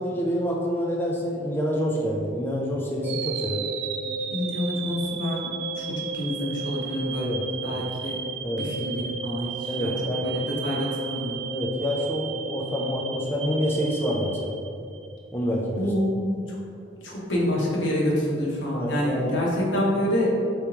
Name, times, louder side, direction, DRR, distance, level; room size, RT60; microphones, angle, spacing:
voice 1, 0.0-3.7 7.2-7.4 8.4-8.7 9.7-10.4 11.5-14.6 15.3-15.8 18.7-19.5, equal, 10° left, -3 dB, 0.4 m, -27 dB
sound 1, 3.0-15.2, right 5 dB, 65° right, 0.3 m, -33 dB
voice 2, 4.3-5.5 5.8-7.3 7.6-8.2 8.5-9.9 10.2-11.3 15.7-16.6 17.0-20.3, left 1 dB, 75° left, -4 dB, 1.0 m, -27 dB
4.6 x 3.4 x 2.9 m, 2.5 s
head